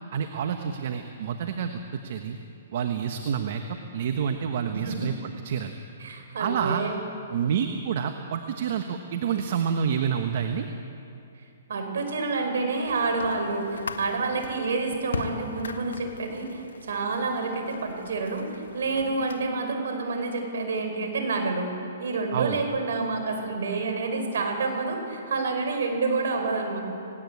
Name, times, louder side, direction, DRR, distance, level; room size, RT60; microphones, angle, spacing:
voice 1, 0.1-2.4 2.7-3.6 3.9-5.7 6.4-6.8 7.3-10.7 22.3-22.6, right 7 dB, 55° right, 6 dB, 1.2 m, -28 dB
voice 2, 4.7-5.1 6.0-6.9 11.7-21.7 22.0-26.8, right 3 dB, 70° right, 4 dB, 5.2 m, -28 dB
sound 1, 12.8-19.5, left 4 dB, 80° left, 1.4 m, -40 dB
18.5 x 18.0 x 8.4 m, 2.7 s
hypercardioid pair, 140°, 0 cm